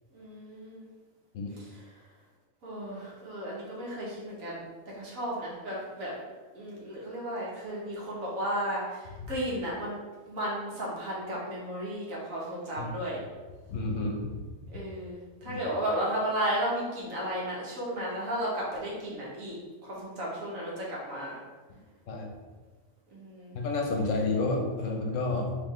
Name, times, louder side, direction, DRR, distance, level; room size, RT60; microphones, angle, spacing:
voice 1, 0.1-0.9 1.5-1.9 2.6-4.6 4.9-6.1 6.5-10.0 10.3-13.2 14.7-19.6 19.8-21.4 23.1-23.6, right 1 dB, 75° right, -5 dB, 1.5 m, -34 dB
voice 2, 13.7-14.2 15.4-15.6 22.1-22.3 23.5-25.6, left 3 dB, 70° left, 1 dB, 1.0 m, -30 dB
3.7 x 3.3 x 3.2 m, 1.3 s
omnidirectional pair, 1.4 m